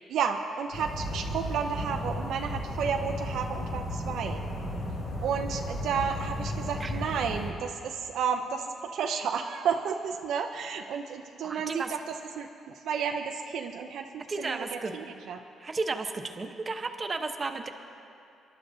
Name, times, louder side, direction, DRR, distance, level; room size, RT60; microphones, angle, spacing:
voice 1, 0.1-4.4 5.2-15.4, right 6 dB, 75° right, 4 dB, 0.6 m, -32 dB
sound 1, 0.7-7.5, left 1 dB, 85° left, 2.4 m, -34 dB
voice 2, 11.4-11.9 14.3-14.9 15.6-17.7, right 3 dB, 35° right, 5 dB, 0.9 m, -33 dB
27.5 x 11.5 x 2.7 m, 2.5 s
cardioid pair, 90°, 0 cm